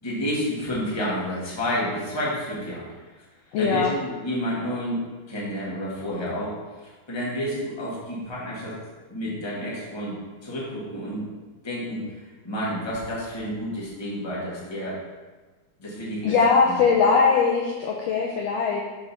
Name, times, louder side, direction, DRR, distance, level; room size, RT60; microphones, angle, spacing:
voice 1, 0.0-2.8 3.6-6.6 6.8-8.8 9.1-10.1 10.4-11.2 11.6-12.0 12.4-15.0 15.8-16.3 16.6-16.8, equal, 15° left, -6 dB, 1.0 m, -30 dB
voice 2, 3.5-3.9 16.2-18.8, left 5 dB, 80° left, -1 dB, 1.5 m, -20 dB
5.9 x 5.1 x 5.6 m, 1.3 s
omnidirectional pair, 3.7 m